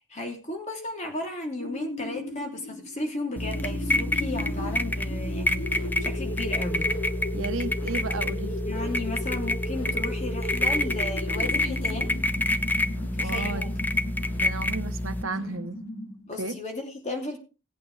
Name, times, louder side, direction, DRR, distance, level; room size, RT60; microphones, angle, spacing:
voice 1, 0.0-6.9 8.6-12.1 13.2-13.8 16.3-17.4, left 2 dB, 35° left, 2.8 m, -35 dB
sound 1, 1.5-16.4, left 1 dB, 90° left, 3.3 m, -37 dB
sound 2, 3.4-15.2, left 1 dB, 10° left, 0.6 m, -28 dB
voice 2, 7.3-8.5 13.2-13.7 14.4-15.8 16.4-16.6, right 3 dB, 80° right, 1.1 m, -33 dB
18.0 x 8.4 x 3.3 m
head